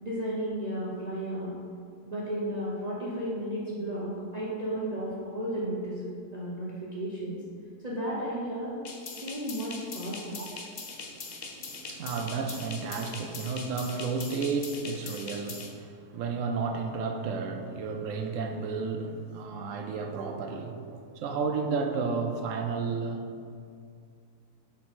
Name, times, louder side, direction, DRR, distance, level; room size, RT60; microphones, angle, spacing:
voice 1, 0.0-1.6 2.0-7.4 7.8-8.7 9.2-10.4, right 1 dB, 35° right, -7 dB, 0.8 m, -33 dB
sound 1, 8.8-15.7, left 4 dB, 75° left, 0.4 m, -42 dB
voice 2, 10.9-23.2, right 4 dB, 65° right, 5 dB, 0.8 m, -32 dB
5.9 x 4.6 x 4.2 m, 2.3 s
omnidirectional pair, 1.6 m